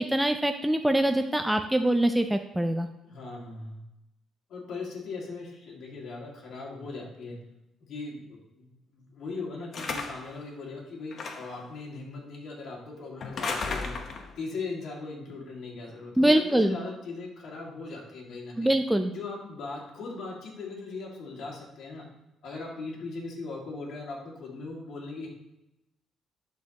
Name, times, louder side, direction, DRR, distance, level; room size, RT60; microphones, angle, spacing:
voice 1, 0.0-2.9 16.2-16.8 18.6-19.1, right 1 dB, 5° right, 6 dB, 0.4 m, -24 dB
voice 2, 3.0-3.8 4.5-7.4 7.8-14.0 14.4-18.7 19.1-22.0 22.4-25.3, left 3 dB, 70° left, -2 dB, 2.1 m, -39 dB
sound 1, 9.7-10.3 11.1-11.6 13.2-14.3, left 4 dB, 55° left, 0.9 m, -34 dB
11.5 x 4.2 x 2.9 m, 0.91 s
cardioid pair, 90°, 0 cm